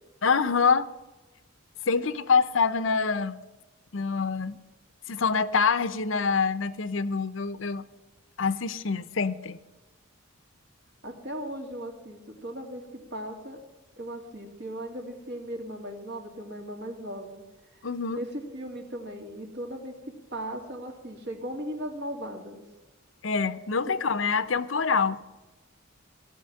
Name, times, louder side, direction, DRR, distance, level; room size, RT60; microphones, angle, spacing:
voice 1, 0.2-0.9 1.9-3.4 3.9-4.6 5.1-7.8 8.4-9.6 17.8-18.2 23.2-25.2, left 5 dB, 70° left, 15 dB, 0.7 m, -25 dB
voice 2, 11.0-13.6 14.0-17.4 18.1-20.0 20.3-22.6 23.9-24.0, right 1 dB, 60° right, 3 dB, 2.6 m, -37 dB
17.0 x 6.0 x 9.9 m, 1.1 s
head